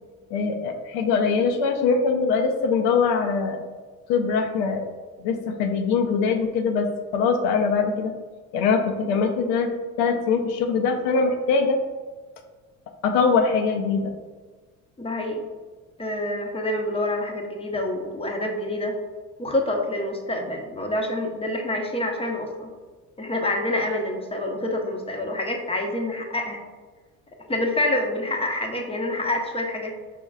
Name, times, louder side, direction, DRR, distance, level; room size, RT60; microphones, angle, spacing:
voice 1, 0.3-3.6 4.1-4.8 5.2-8.1 8.5-9.7 10.0-11.8 13.0-14.1, left 5 dB, 65° left, 4 dB, 0.7 m, -22 dB
voice 2, 15.0-15.4 16.0-18.9 19.4-22.7 23.2-26.6 27.4-29.9, left 1 dB, 15° left, 2 dB, 0.7 m, -27 dB
5.0 x 3.0 x 2.3 m, 1.4 s
hypercardioid pair, 60°, 42 cm